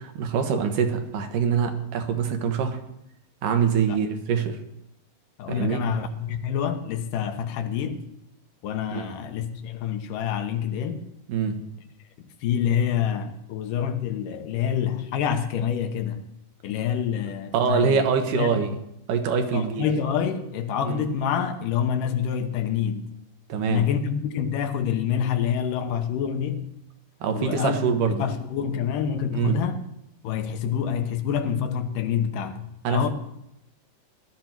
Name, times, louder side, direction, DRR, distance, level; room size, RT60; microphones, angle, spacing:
voice 1, 0.0-2.8 3.4-4.6 5.5-5.8 8.9-9.1 11.3-11.6 17.5-18.7 19.1-19.9 20.9-21.0 23.5-23.9 27.2-28.2 29.3-29.6 32.8-33.1, right 6 dB, 85° right, 2.9 m, -24 dB
voice 2, 5.4-8.0 8.6-11.0 12.4-16.2 16.6-18.0 18.3-18.6 19.5-23.0 23.7-26.7 27.3-27.8 28.1-29.8 30.2-33.1, left 8 dB, 85° left, 2.8 m, -27 dB
18.5 x 12.0 x 4.6 m
omnidirectional pair, 3.7 m